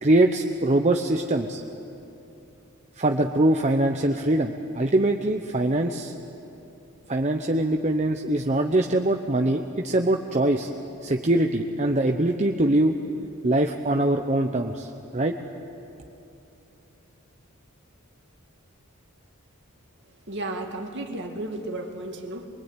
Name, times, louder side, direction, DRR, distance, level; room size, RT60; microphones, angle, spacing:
voice 1, 0.0-1.6 3.0-6.1 7.1-10.7 11.0-12.9 13.4-15.4, right 1 dB, 30° right, 4 dB, 0.8 m, -23 dB
voice 2, 20.3-22.5, right 2 dB, 50° right, 3 dB, 2.2 m, -33 dB
23.5 x 23.5 x 9.1 m, 2.8 s
head